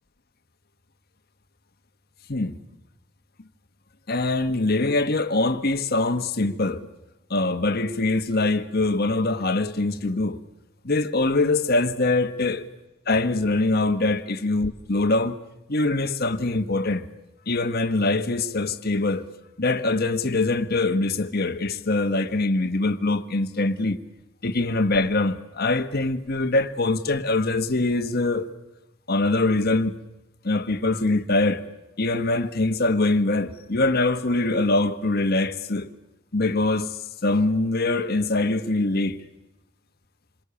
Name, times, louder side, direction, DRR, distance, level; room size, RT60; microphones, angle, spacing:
voice 1, 4.1-6.9 7.3-10.4 10.8-12.6 13.1-15.4 15.7-17.1 17.5-19.3 19.6-24.0 24.4-28.5 29.1-30.0 30.4-31.6 32.0-35.9 36.3-39.2, left 2 dB, 50° left, 1.4 m, -23 dB
27.0 x 23.0 x 7.1 m
head